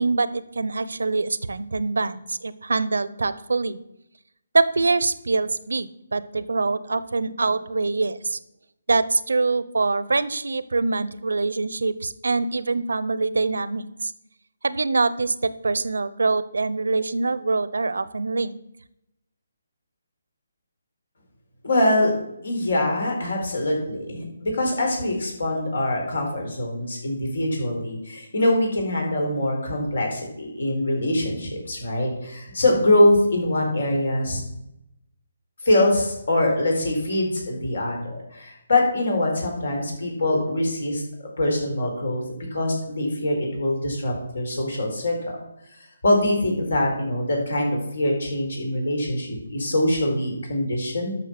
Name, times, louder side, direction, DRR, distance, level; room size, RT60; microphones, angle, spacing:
voice 1, 0.0-3.8 4.5-8.4 8.9-14.1 14.6-18.6, right 3 dB, 75° right, 16 dB, 0.7 m, -24 dB
voice 2, 21.6-22.1 22.4-34.4 35.6-42.2 42.5-45.1 45.8-51.2, left 1 dB, 70° left, 1 dB, 4.3 m, -23 dB
12.0 x 6.2 x 6.0 m, 0.84 s
figure-of-eight pair, 150°, 0 cm